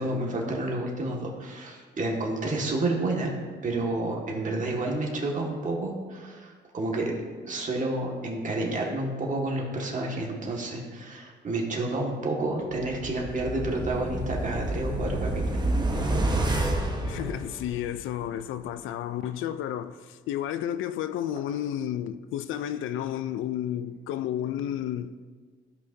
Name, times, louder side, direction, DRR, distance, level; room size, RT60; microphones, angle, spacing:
voice 1, 0.0-3.4 3.6-7.1 7.4-15.6, right 2 dB, 40° right, 1.9 m, -30 dB
sound 1, 12.8-18.0 18.4-18.5, right 1 dB, 20° right, 1.2 m, -29 dB
voice 2, 17.0-25.1, left 11 dB, 85° left, 0.4 m, -32 dB
15.5 x 5.5 x 2.8 m
cardioid pair, 90°, 20 cm